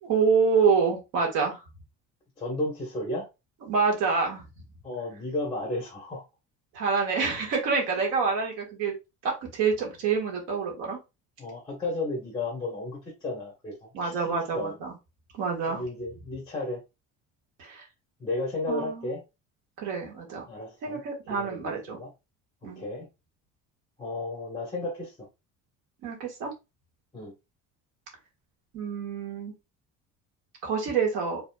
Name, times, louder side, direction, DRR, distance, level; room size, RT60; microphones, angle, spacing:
voice 1, 0.0-1.6 3.7-4.4 6.7-8.9 9.2-11.0 13.9-14.9 15.3-15.8 17.6-17.8 18.7-19.1 19.8-20.5 20.8-22.0 22.6-22.8 26.0-26.5 28.7-29.5 30.6-31.4, right 5 dB, 90° right, 1.8 m, -27 dB
voice 2, 2.4-3.2 4.8-6.2 11.4-13.7 14.0-14.7 15.7-16.8 18.2-19.2 20.5-21.0 21.3-22.1 22.8-23.1 24.0-25.3 27.1-27.3, left 2 dB, 15° left, 1.4 m, -33 dB
5.3 x 3.3 x 2.3 m
cardioid pair, 160°, 31 cm